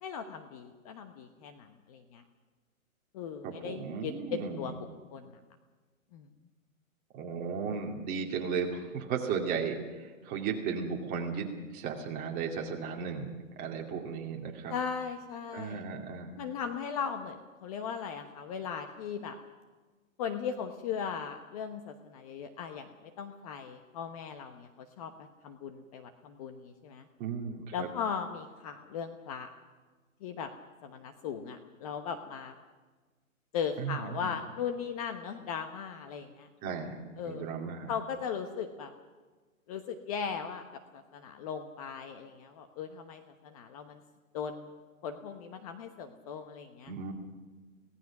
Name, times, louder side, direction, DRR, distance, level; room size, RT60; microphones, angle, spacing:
voice 1, 0.0-2.2 3.1-5.4 6.1-6.3 14.7-15.8 16.4-19.4 20.2-25.1 25.4-27.1 27.7-29.5 30.2-30.5 30.8-32.5 33.5-36.5 37.2-37.5 37.9-38.9 39.7-40.6 40.9-44.0 44.3-44.7 45.0-46.9, left 7 dB, 25° left, 7 dB, 1.0 m, -38 dB
voice 2, 3.4-4.7 7.1-11.5 11.7-14.7 15.5-16.3 27.2-27.9 33.8-34.3 36.6-37.9 46.9-47.1, right 6 dB, 20° right, 1 dB, 2.5 m, -35 dB
25.0 x 17.5 x 6.0 m, 1.3 s
hypercardioid pair, 155°, 42 cm